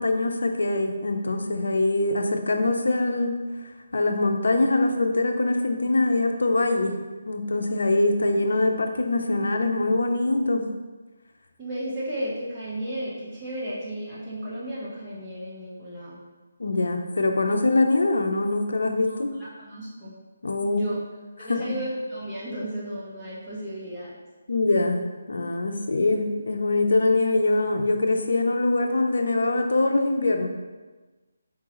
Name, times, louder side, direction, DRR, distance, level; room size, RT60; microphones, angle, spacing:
voice 1, 0.0-3.4 3.9-7.0 7.3-10.7 16.6-19.3 20.4-20.8 21.4-21.6 24.5-30.5, left 2 dB, 80° left, 5 dB, 0.6 m, -23 dB
voice 2, 11.6-16.2 19.1-20.1 20.6-21.0 21.4-24.1, right 1 dB, 10° right, -11 dB, 1.0 m, -34 dB
4.6 x 3.7 x 3.0 m, 1.3 s
hypercardioid pair, 175°, 0 cm